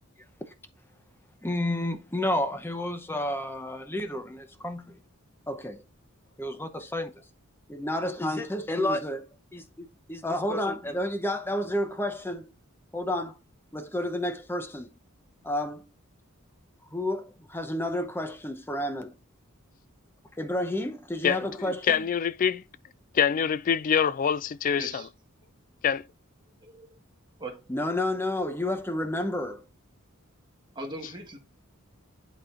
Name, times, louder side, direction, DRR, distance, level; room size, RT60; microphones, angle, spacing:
voice 1, 1.4-5.0 5.5-5.8 6.4-7.2 7.7-12.5 12.9-13.3 13.7-14.9 15.4-15.9 16.9-19.2 20.4-22.0 27.7-29.6, left 1 dB, 10° left, 0.7 m, -30 dB
voice 2, 21.2-22.6 23.1-25.1 25.8-26.0, left 7 dB, 40° left, 0.3 m, -25 dB
voice 3, 24.8-25.1 26.6-26.9 27.4-27.6 30.7-31.4, right 1 dB, 20° right, 1.5 m, -39 dB
11.0 x 4.1 x 2.5 m
head